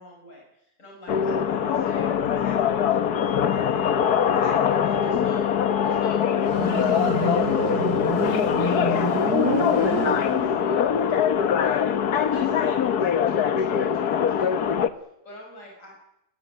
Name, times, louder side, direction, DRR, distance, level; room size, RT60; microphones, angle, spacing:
voice 1, 0.0-3.8 4.3-5.5 5.8-8.2 8.6-14.8 15.2-16.0, equal, 55° left, 0 dB, 6.3 m, -44 dB
sound 1, 1.1-14.9, left 8 dB, 80° left, 1.7 m, -23 dB
Motorcycle, 6.4-10.8, right 2 dB, 85° right, 3.5 m, -28 dB
21.5 x 20.0 x 9.8 m, 0.83 s
omnidirectional pair, 1.7 m